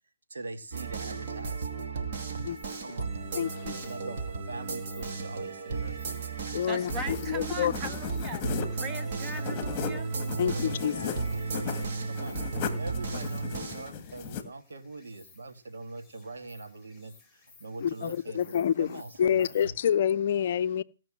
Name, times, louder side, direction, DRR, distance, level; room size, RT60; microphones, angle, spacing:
voice 1, 0.3-2.5 2.8-3.1 3.7-6.6 10.4-12.4 12.7-19.7, right 3 dB, 75° right, 2.1 m, -43 dB
sound 1, 0.7-13.9, right 4 dB, 45° right, 2.7 m, -34 dB
Insect, 2.3-19.6, left 4 dB, ahead, 7.1 m, -60 dB
voice 2, 3.3-3.9 6.5-7.7 10.4-11.2 17.8-20.8, left 9 dB, 50° left, 0.6 m, -28 dB
sound 2, 6.4-14.4, left 8 dB, 25° left, 2.0 m, -38 dB
voice 3, 6.7-8.4 8.7-10.1, right 2 dB, 15° right, 1.6 m, -39 dB
17.0 x 5.9 x 7.6 m
hypercardioid pair, 145°, 0 cm